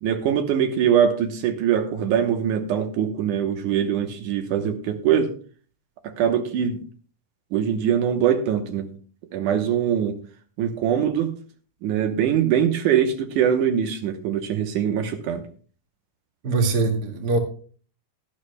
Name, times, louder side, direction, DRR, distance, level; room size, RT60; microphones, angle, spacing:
voice 1, 0.0-5.3 6.0-6.8 7.5-8.9 9.3-10.2 10.6-11.3 11.8-15.4, right 8 dB, 75° right, 5 dB, 2.5 m, -22 dB
voice 2, 16.4-17.4, right 3 dB, 35° right, 2 dB, 2.2 m, -22 dB
17.5 x 11.5 x 2.2 m, 0.42 s
omnidirectional pair, 3.7 m